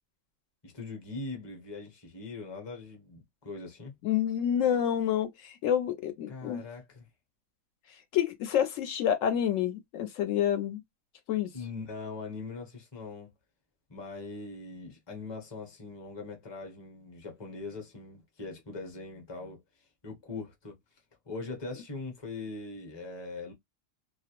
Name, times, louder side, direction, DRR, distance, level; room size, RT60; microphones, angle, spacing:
voice 1, 0.6-3.9 6.3-7.1 11.5-13.3 13.9-19.6 20.0-20.8 21.3-23.5, left 3 dB, 25° left, 0.7 m, -41 dB
voice 2, 4.0-6.6 8.1-10.8 11.3-11.5, left 9 dB, 80° left, 0.9 m, -28 dB
2.4 x 2.0 x 2.9 m
omnidirectional pair, 1.3 m